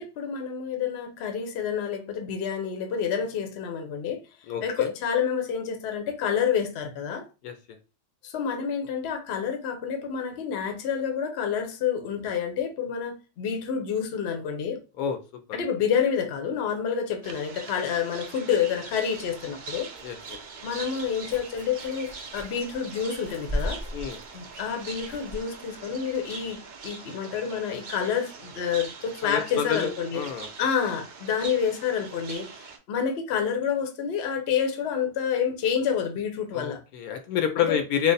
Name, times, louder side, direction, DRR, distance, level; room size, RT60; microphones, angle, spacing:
voice 1, 0.0-4.2 4.6-7.3 8.2-14.8 15.5-19.9 20.6-23.8 24.3-30.2 30.6-32.5 32.9-36.8 37.7-37.8, left 7 dB, 55° left, 0.8 m, -28 dB
voice 2, 4.5-4.9 7.4-7.5 15.0-15.2 20.0-20.2 23.9-24.2 29.2-30.5 36.5-38.1, left 8 dB, 75° left, 1.1 m, -28 dB
sound 1, 17.2-32.8, right 5 dB, 85° right, 0.4 m, -42 dB
sound 2, 19.1-26.9, equal, 25° left, 0.5 m, -39 dB
3.2 x 2.1 x 3.9 m
omnidirectional pair, 1.6 m